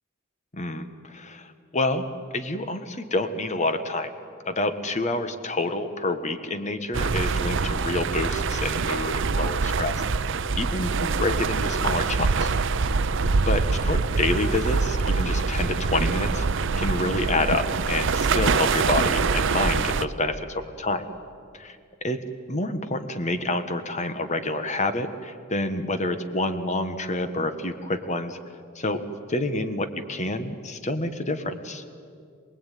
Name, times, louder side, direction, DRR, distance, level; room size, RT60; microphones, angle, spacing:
voice 1, 0.5-2.0 2.3-4.1 4.4-9.9 10.5-12.5 13.5-16.5 16.8-21.0 21.5-21.8 22.0-22.2 22.5-28.4 28.7-29.0 29.3-31.8, left 2 dB, 35° left, 9 dB, 1.5 m, -28 dB
sound 1, 6.9-20.1, right 4 dB, 65° right, 0.7 m, -24 dB
27.5 x 19.5 x 9.4 m, 2.2 s
head